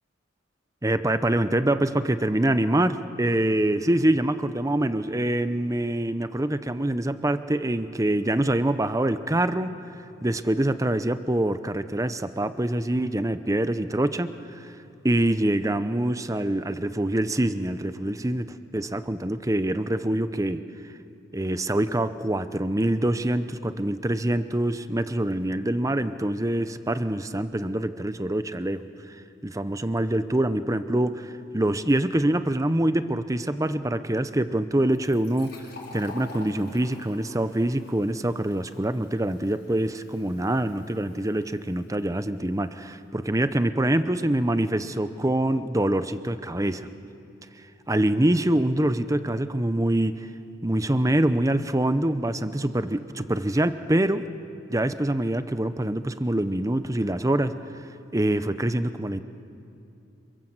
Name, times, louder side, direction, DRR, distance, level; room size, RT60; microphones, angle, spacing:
voice 1, 0.8-9.8 10.2-14.7 15.0-20.6 21.3-28.9 29.4-35.5 35.9-46.9 47.9-50.3 50.6-54.3 54.7-57.6 58.1-59.2, right 1 dB, 15° right, 11 dB, 0.8 m, -25 dB
Fill (with liquid), 34.9-42.3, left 3 dB, 55° left, 5.5 m, -48 dB
27.5 x 27.0 x 7.9 m, 2.7 s
head